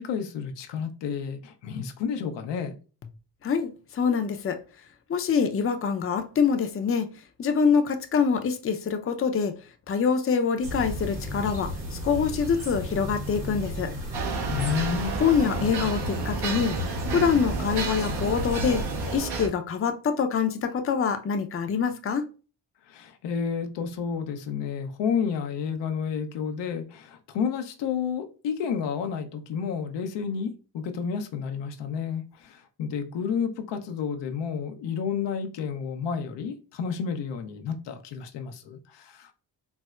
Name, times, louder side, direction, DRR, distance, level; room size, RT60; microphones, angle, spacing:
voice 1, 0.0-2.7 14.5-15.1 22.9-39.3, left 6 dB, 80° left, 0.6 m, -31 dB
voice 2, 3.4-4.6 5.1-7.1 7.4-9.5 9.9-13.9 15.2-16.8 17.1-18.8 19.1-22.2, left 6 dB, 30° left, 0.6 m, -25 dB
sound 1, 10.6-19.2, equal, 90° right, 1.5 m, -34 dB
sound 2, 14.1-19.5, right 4 dB, 65° right, 1.0 m, -32 dB
4.3 x 2.0 x 2.3 m
supercardioid pair, 60°, 42 cm